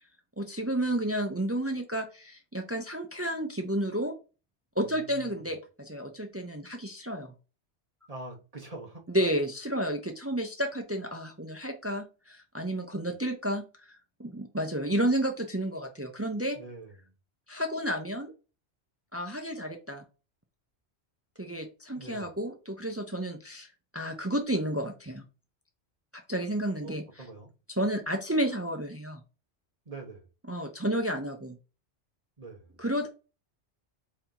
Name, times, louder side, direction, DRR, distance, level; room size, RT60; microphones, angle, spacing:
voice 1, 0.4-4.1 4.8-7.3 9.1-16.6 17.5-18.3 19.1-20.0 21.4-23.7 23.9-25.2 26.3-27.0 27.7-29.2 30.5-31.6 32.8-33.1, right 1 dB, 20° right, 0.4 m, -31 dB
voice 2, 4.8-5.4 8.1-9.0 16.5-17.1 22.0-22.4 26.8-27.5 29.9-30.3 32.4-32.8, right 2 dB, 35° right, 1.0 m, -45 dB
4.2 x 2.8 x 3.7 m
omnidirectional pair, 1.1 m